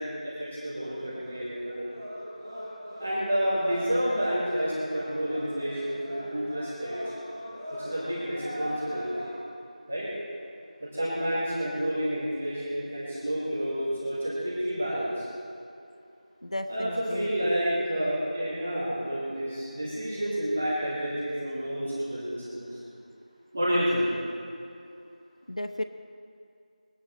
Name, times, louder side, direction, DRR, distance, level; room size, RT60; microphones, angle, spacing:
voice 1, 0.0-2.0 3.0-7.0 7.8-9.2 9.9-10.1 10.8-15.3 16.7-23.0 23.5-24.1, equal, 10° right, -10 dB, 1.9 m, -30 dB
sound 1, 0.8-9.3, equal, 5° left, 3.2 m, -41 dB
voice 2, 16.4-17.5 25.5-25.8, left 1 dB, 50° left, 9 dB, 0.9 m, -34 dB
22.0 x 9.6 x 4.3 m, 2.5 s
figure-of-eight pair, 180°, 4 cm